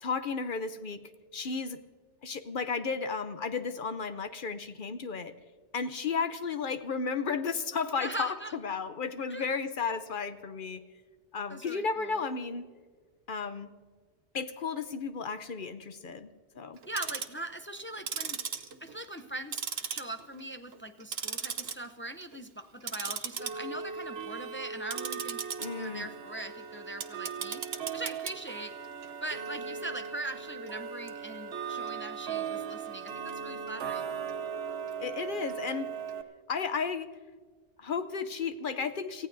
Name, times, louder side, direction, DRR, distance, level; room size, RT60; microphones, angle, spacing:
voice 1, 0.0-1.8 2.2-5.3 5.7-10.8 11.3-12.7 13.3-13.7 14.3-16.8 25.6-26.1 35.0-35.9 36.5-37.1 37.8-39.3, left 5 dB, 55° left, 10 dB, 0.8 m, -33 dB
voice 2, 8.0-8.5 9.3-9.4 11.5-12.2 16.9-18.4 18.8-25.4 25.8-27.6 27.9-28.7 29.2-34.1, right 1 dB, 20° left, 7 dB, 0.4 m, -41 dB
Tick-tock, 16.8-17.4 18.0-19.3 19.5-20.4 20.7-21.7 22.1-22.4 22.8-36.2, right 6 dB, 65° right, 1.1 m, -37 dB
27.5 x 16.0 x 2.6 m, 1.5 s
omnidirectional pair, 1.2 m